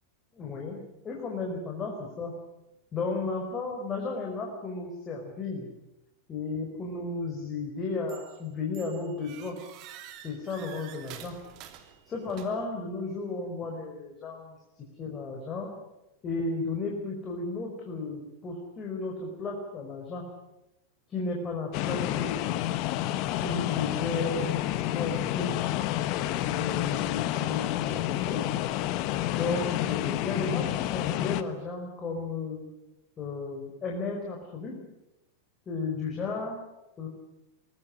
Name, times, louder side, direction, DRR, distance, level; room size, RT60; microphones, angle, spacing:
voice 1, 0.3-0.8 1.0-2.3 2.9-5.7 6.3-9.6 10.2-11.3 12.1-14.6 15.0-15.7 16.2-20.3 21.1-22.6 23.4-25.5 26.4-28.4 29.3-32.6 33.2-34.8 35.7-36.6 37.0-37.1, left 3 dB, 25° left, 0 dB, 4.9 m, -34 dB
sound 1, 8.1-8.4 8.7-12.8, right 10 dB, 40° right, 3.1 m, -48 dB
sound 2, 21.7-31.4, left 14 dB, 40° left, 1.3 m, -29 dB
24.0 x 19.5 x 9.8 m, 0.94 s
figure-of-eight pair, 90°, 0 cm